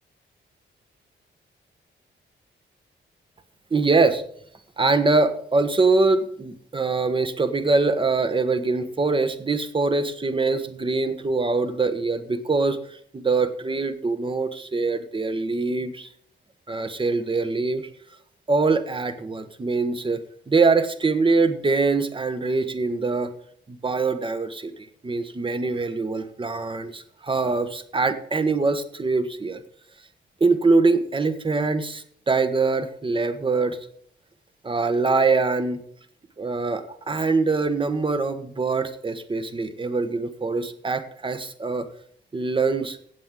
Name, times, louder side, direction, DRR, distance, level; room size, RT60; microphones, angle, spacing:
voice 1, 3.7-4.2 4.8-16.1 16.7-17.9 18.5-23.3 23.7-29.6 30.4-33.8 34.6-35.8 36.4-41.9 42.3-43.0, right 3 dB, 25° right, 10 dB, 1.3 m, -23 dB
16.5 x 7.6 x 3.9 m, 0.62 s
wide cardioid pair, 130°, 20 cm